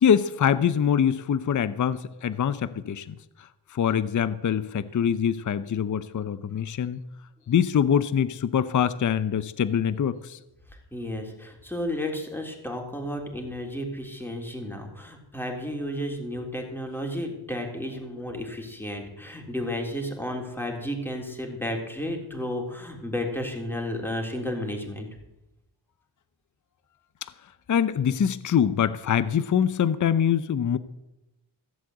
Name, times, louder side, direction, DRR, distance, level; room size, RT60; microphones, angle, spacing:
voice 1, 0.0-3.2 3.7-7.0 7.5-10.4 27.7-30.8, left 8 dB, 40° left, 15 dB, 0.7 m, -24 dB
voice 2, 10.9-25.1, left 1 dB, 5° left, 1 dB, 3.5 m, -32 dB
15.5 x 7.7 x 7.9 m, 0.94 s
cardioid pair, 80°, 46 cm